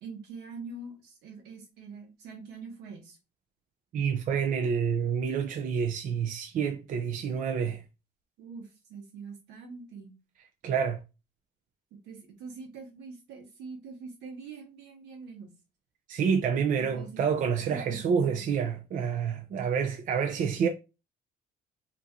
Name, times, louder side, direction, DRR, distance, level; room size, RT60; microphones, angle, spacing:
voice 1, 0.0-3.2 8.4-10.1 11.9-15.5 16.8-17.4 17.7-18.5, right 4 dB, 85° right, 1.3 m, -44 dB
voice 2, 3.9-7.8 10.6-11.0 16.1-20.7, right 6 dB, 50° right, 0.5 m, -28 dB
2.9 x 2.6 x 3.6 m
cardioid pair, 110°, 17 cm